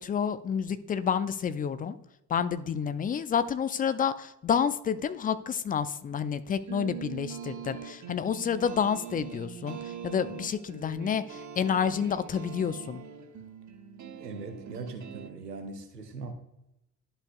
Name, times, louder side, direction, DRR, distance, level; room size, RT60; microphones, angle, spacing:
voice 1, 0.0-2.0 2.3-13.0, left 7 dB, 20° left, 13 dB, 0.4 m, -29 dB
sound 1, 6.5-15.3, right 7 dB, 40° right, 1.1 m, -42 dB
voice 2, 14.0-16.3, right 3 dB, 90° right, 6 dB, 0.7 m, -40 dB
11.5 x 5.5 x 2.3 m, 0.87 s
figure-of-eight pair, 45°, 47 cm